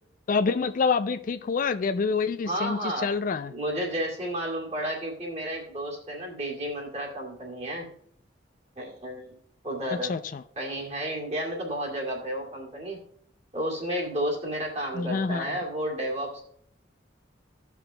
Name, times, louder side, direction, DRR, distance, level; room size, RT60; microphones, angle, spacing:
voice 1, 0.3-3.5 10.0-10.4 14.9-15.6, left 5 dB, 45° left, 10 dB, 0.3 m, -27 dB
voice 2, 2.4-3.1 3.5-7.9 8.8-9.3 9.6-10.1 10.6-13.0 13.5-16.4, equal, 35° right, -1 dB, 2.3 m, -32 dB
17.0 x 5.8 x 2.2 m, 0.68 s
head